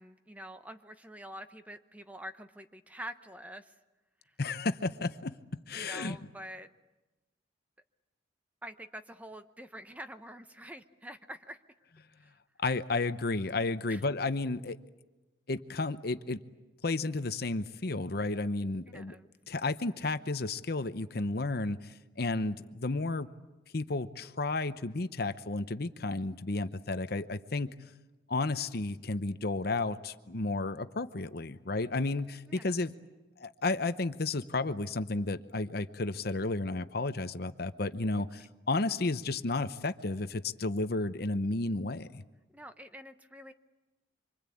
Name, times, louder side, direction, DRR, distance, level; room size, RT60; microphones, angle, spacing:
voice 1, 0.0-3.7 5.7-6.7 8.6-11.6 12.2-12.3 13.9-14.0 18.9-19.3 32.5-32.8 42.5-43.5, right 1 dB, 10° right, 9 dB, 0.9 m, -46 dB
voice 2, 4.4-5.3 5.7-6.2 12.6-14.8 15.5-16.4 16.8-19.2 19.5-23.3 23.7-27.8 28.3-32.9 33.4-42.2, left 3 dB, 55° left, 11 dB, 0.9 m, -32 dB
26.0 x 25.0 x 8.6 m, 1.1 s
head